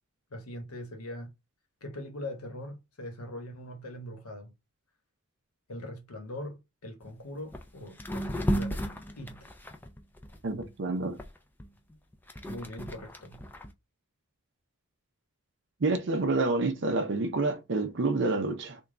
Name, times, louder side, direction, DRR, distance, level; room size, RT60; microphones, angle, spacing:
voice 1, 0.3-1.3 1.8-4.5 5.7-8.9 9.2-9.5 12.5-13.4, left 1 dB, 85° left, 1.0 m, -41 dB
sound 1, 7.0-7.1 7.5-7.7 8.0-10.7 11.2-13.7, equal, 10° left, 0.4 m, -34 dB
voice 2, 10.4-11.2 15.8-18.8, right 3 dB, 55° right, 0.5 m, -28 dB
3.5 x 2.2 x 3.7 m
head